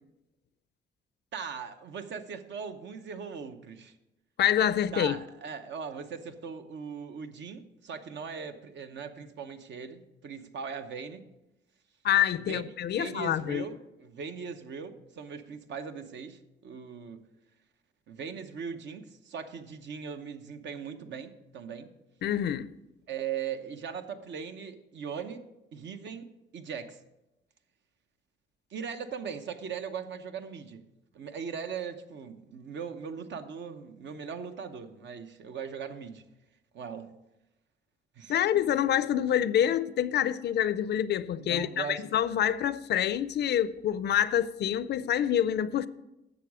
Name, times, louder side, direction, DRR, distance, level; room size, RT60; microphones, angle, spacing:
voice 1, 1.3-3.9 4.9-11.3 12.5-12.6 12.9-17.2 18.1-21.9 23.1-27.0 28.7-30.9 31.1-36.2 36.7-37.1 38.2-38.6 41.3-42.1, right 6 dB, 65° right, 0.9 m, -39 dB
voice 2, 4.4-5.2 12.0-13.6 22.2-22.7 38.3-45.9, left 10 dB, 60° left, 0.5 m, -27 dB
11.0 x 7.3 x 4.9 m
cardioid pair, 90°, 20 cm